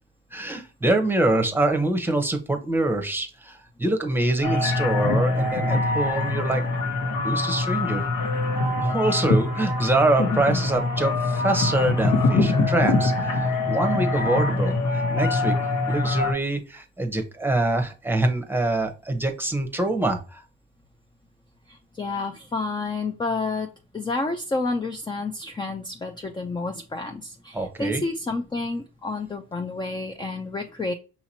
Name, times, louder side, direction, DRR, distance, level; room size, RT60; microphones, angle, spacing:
voice 1, 0.3-6.6 7.2-8.1 8.8-15.6 15.9-20.4 27.5-28.0, right 2 dB, 5° right, 4 dB, 0.8 m, -25 dB
sound 1, 4.4-16.3, left 2 dB, 80° left, 1.2 m, -24 dB
voice 2, 21.7-23.7 23.9-30.9, left 3 dB, 15° left, 5 dB, 0.4 m, -30 dB
5.7 x 2.9 x 2.8 m, 0.33 s
cardioid pair, 90°, 30 cm